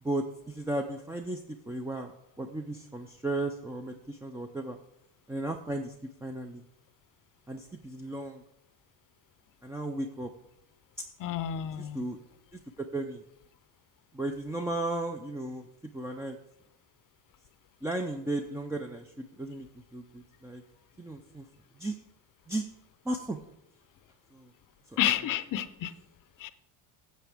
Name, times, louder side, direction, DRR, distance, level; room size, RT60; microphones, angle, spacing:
voice 1, 0.0-2.1 2.4-4.8 5.3-5.9 6.2-6.6 7.5-8.4 9.6-10.3 11.0-11.1 11.8-12.2 12.8-13.2 14.1-15.7 15.9-16.4 17.8-20.6 21.0-21.5 21.8-22.0 22.5-22.6 23.0-23.4 24.3-24.5 24.9-25.4, right 2 dB, 5° right, 3 dB, 0.5 m, -35 dB
voice 2, 11.2-12.0 25.0-25.9 26.4-26.5, left 11 dB, 45° left, 14 dB, 0.7 m, -30 dB
15.0 x 7.4 x 3.5 m, 0.84 s
cardioid pair, 115°, 46 cm